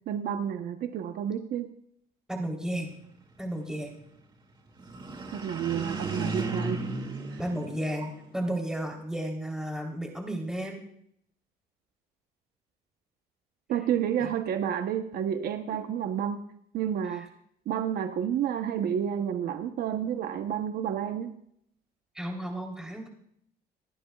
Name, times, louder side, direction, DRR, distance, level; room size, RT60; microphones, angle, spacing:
voice 1, 0.1-1.7 5.3-6.8 7.3-7.4 13.7-16.4 16.7-17.3 17.7-21.3, right 9 dB, 65° right, 7 dB, 1.0 m, -30 dB
voice 2, 2.3-2.9 3.4-4.0 7.4-10.8 14.2-14.3 15.7-15.8 22.2-23.1, right 1 dB, 5° right, 0 dB, 3.5 m, -33 dB
sound 1, 4.8-8.4, right 3 dB, 25° right, 2.4 m, -35 dB
26.0 x 11.0 x 2.4 m, 0.69 s
cardioid pair, 110°, 17 cm